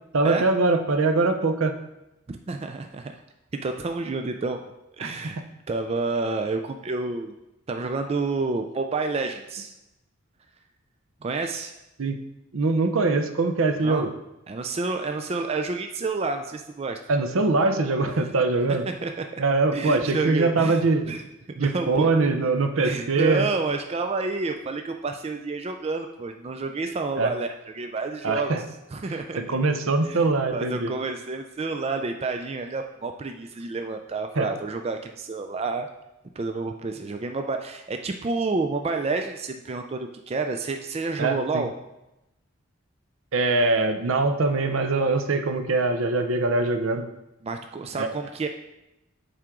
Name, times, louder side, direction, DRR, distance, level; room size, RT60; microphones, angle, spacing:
voice 1, 0.1-1.8 5.0-5.4 12.0-12.2 12.5-14.1 17.1-18.9 19.4-21.1 21.6-23.5 27.2-27.3 28.2-28.6 29.4-30.9 34.4-34.5 41.2-41.6 43.3-47.0 48.0-48.1, right 3 dB, 70° right, 7 dB, 0.7 m, -23 dB
voice 2, 2.3-3.2 3.5-4.6 5.0-5.4 5.7-7.3 7.7-9.7 11.2-11.7 13.8-14.1 14.5-17.0 18.1-18.2 19.0-19.4 19.7-21.2 21.6-22.1 22.8-28.5 28.9-29.5 30.1-30.2 30.5-35.9 36.4-41.7 47.4-48.5, right 3 dB, 30° right, 5 dB, 0.3 m, -29 dB
7.4 x 5.0 x 3.7 m, 0.92 s
head